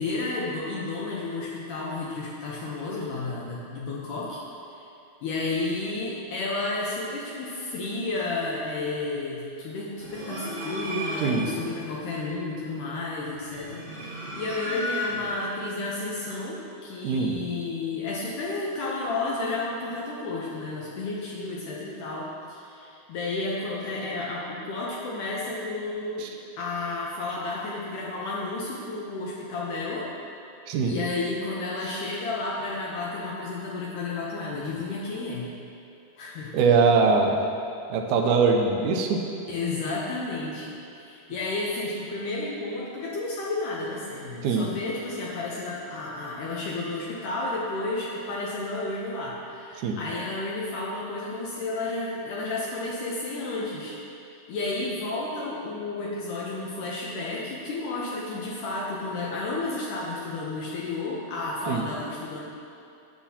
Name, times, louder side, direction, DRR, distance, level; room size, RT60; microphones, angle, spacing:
voice 1, 0.0-4.4 4.7-4.9 5.2-26.3 26.6-30.1 30.8-35.5 36.2-36.5 39.5-54.0 54.3-62.4, left 3 dB, 75° left, -5 dB, 2.3 m, -32 dB
sound 1, 10.0-11.6 13.4-15.5, equal, 55° right, 1.3 m, -34 dB
voice 2, 17.0-17.3 30.7-30.9 36.5-37.4 37.9-39.2 44.4-44.7 49.8-50.0 61.7-61.8, right 4 dB, 75° right, 2 dB, 2.0 m, -22 dB
12.0 x 7.6 x 2.9 m, 2.7 s
omnidirectional pair, 4.0 m